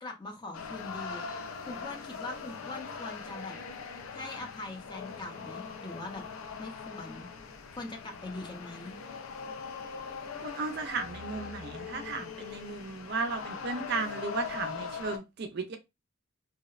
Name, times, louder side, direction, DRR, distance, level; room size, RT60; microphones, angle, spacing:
voice 1, 0.0-1.2 1.6-3.6 4.1-6.2 6.6-7.3 7.7-9.0, left 2 dB, 20° left, 0.4 m, -42 dB
sound 1, 0.5-15.2, left 5 dB, 80° left, 0.4 m, -41 dB
voice 2, 10.4-15.8, right 4 dB, 50° right, 0.4 m, -35 dB
2.7 x 2.0 x 2.3 m
head